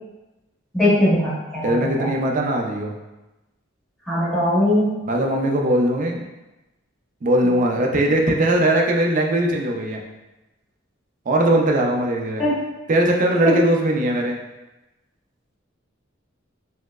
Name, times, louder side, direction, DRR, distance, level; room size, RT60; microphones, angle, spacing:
voice 1, 0.7-2.1 4.1-5.0 12.4-12.6 13.4-13.6, left 1 dB, ahead, -10 dB, 1.0 m, -20 dB
voice 2, 1.6-2.9 5.1-6.2 7.2-10.0 11.3-12.4 12.9-14.4, right 1 dB, 40° right, 1 dB, 0.4 m, -20 dB
4.2 x 2.0 x 2.3 m, 1.0 s
head